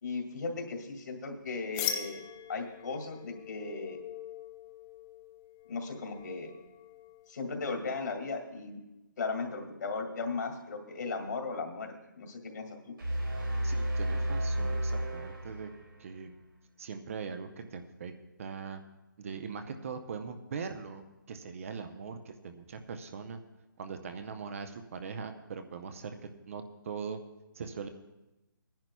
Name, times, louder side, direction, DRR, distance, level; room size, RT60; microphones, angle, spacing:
voice 1, 0.0-2.2 2.5-4.0 5.7-6.5 7.3-8.8 9.2-12.9, left 4 dB, 60° left, 4 dB, 2.1 m, -37 dB
sound 1, 1.7-7.3, left 9 dB, 15° left, 0.5 m, -41 dB
sound 2, 13.0-16.2, right 1 dB, 90° right, 4.2 m, -32 dB
voice 2, 13.6-15.7 16.0-16.3 16.8-18.1 18.4-18.8 19.2-23.4 23.8-27.2 27.5-27.9, right 5 dB, 40° right, 8 dB, 0.7 m, -41 dB
22.0 x 10.5 x 2.3 m, 0.98 s
hypercardioid pair, 155°, 11 cm